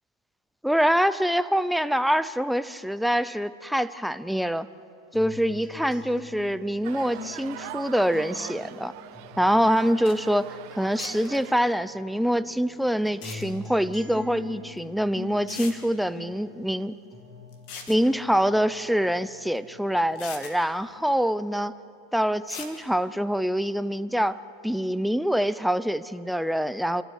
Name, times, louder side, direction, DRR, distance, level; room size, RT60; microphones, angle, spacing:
voice 1, 0.6-4.7 5.1-8.9 9.4-16.9 17.9-21.7 22.1-27.0, equal, ahead, 13 dB, 0.6 m, -25 dB
sound 1, 5.1-11.8 12.2-19.8 20.2-21.1, left 3 dB, 20° left, 3.4 m, -45 dB
sound 2, 6.8-11.8, right 14 dB, 55° right, 1.2 m, -42 dB
sound 3, 9.8-9.9 10.1-10.2 11.0-11.4 13.1-13.4 14.8-14.9 15.5-15.8 17.5-18.0 19.6-19.7 20.2-20.5 22.5-22.7, left 6 dB, 60° left, 2.9 m, -40 dB
29.0 x 13.0 x 9.5 m, 2.5 s
supercardioid pair, 120°, 0 cm